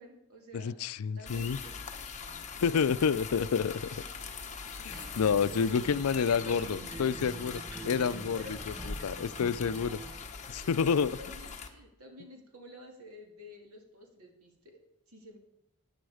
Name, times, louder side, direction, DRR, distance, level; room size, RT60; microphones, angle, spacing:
voice 1, 0.0-1.8 2.5-3.5 4.9-6.1 6.4-6.7 7.0-7.1 7.7-8.5 9.0-9.1 10.5-15.4, equal, 85° right, 2 dB, 2.5 m, -51 dB
voice 2, 0.6-1.6 2.6-3.7 4.8-7.6 7.8-8.7 9.0-10.0 10.5-11.2, left 6 dB, 80° left, 17 dB, 0.4 m, -29 dB
sound 1, 1.3-11.7, left 5 dB, 35° left, 1.2 m, -42 dB
Acoustic guitar, 4.9-10.3, right 2 dB, 10° right, 0.7 m, -47 dB
14.0 x 9.9 x 4.9 m, 0.80 s
head